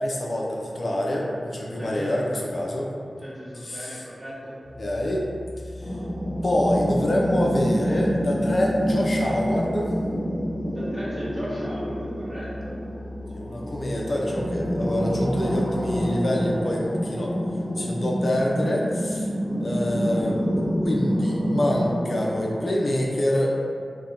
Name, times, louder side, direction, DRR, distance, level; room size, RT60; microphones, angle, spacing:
voice 1, 0.0-2.9 3.6-4.0 4.8-5.2 6.4-9.9 13.3-17.3 17.8-19.3 19.6-20.4 20.8-23.6, left 1 dB, 60° left, -3 dB, 0.4 m, -26 dB
voice 2, 1.7-2.5 3.2-4.6 10.7-12.8, equal, 20° right, -8 dB, 0.9 m, -37 dB
sound 1, 4.6-16.0, left 1 dB, 40° right, 0.5 m, -40 dB
sound 2, 5.8-22.7, equal, 15° left, 1.0 m, -27 dB
2.8 x 2.1 x 2.4 m, 2.2 s
cardioid pair, 40°, 0 cm